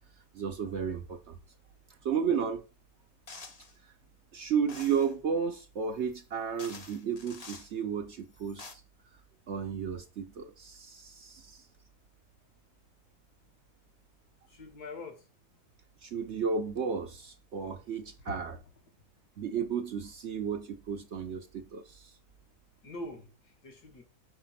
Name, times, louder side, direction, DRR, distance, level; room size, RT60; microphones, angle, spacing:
voice 1, 0.3-1.4 2.0-2.7 3.8-3.9 4.3-8.8 9.5-11.7 16.0-18.6 19.4-22.2, right 6 dB, 55° right, 0.8 m, -33 dB
sound 1, 3.3-3.7 4.7-5.1 6.1-6.2 6.6-7.7 8.3-8.7, left 4 dB, 40° left, 0.6 m, -47 dB
voice 2, 14.5-15.3 18.2-18.4 22.8-24.0, left 2 dB, 80° left, 2.1 m, -43 dB
5.0 x 5.0 x 5.7 m
omnidirectional pair, 1.7 m